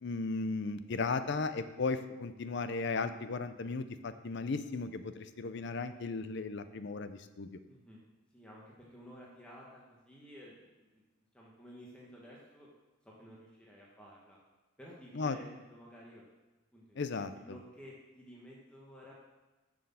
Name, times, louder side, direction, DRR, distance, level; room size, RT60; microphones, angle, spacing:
voice 1, 0.0-7.5 15.1-15.4 17.0-17.6, left 4 dB, 60° left, 11 dB, 0.6 m, -36 dB
voice 2, 7.7-8.0 8.3-11.0 11.3-12.7 13.0-14.4 14.8-16.2 16.7-17.0 17.4-19.1, equal, 5° left, -4 dB, 1.2 m, -53 dB
7.6 x 6.3 x 7.1 m, 1.1 s
head